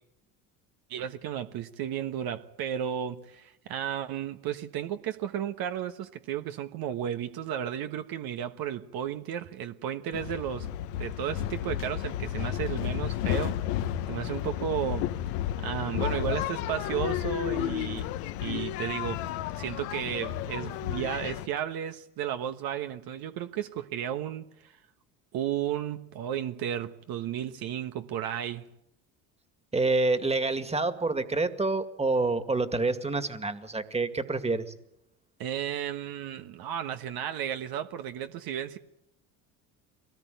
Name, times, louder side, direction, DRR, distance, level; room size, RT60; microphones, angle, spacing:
voice 1, 0.9-10.7 11.0-13.6 14.1-15.1 15.6-18.1 18.4-19.3 19.5-24.7 25.3-28.7 35.4-38.8, right 10 dB, 60° right, 1.4 m, -33 dB
sound 1, 10.1-21.5, left 12 dB, 70° left, 1.2 m, -32 dB
voice 2, 29.7-34.7, right 3 dB, 15° right, 2.2 m, -27 dB
24.0 x 18.5 x 9.3 m
hypercardioid pair, 70°, 41 cm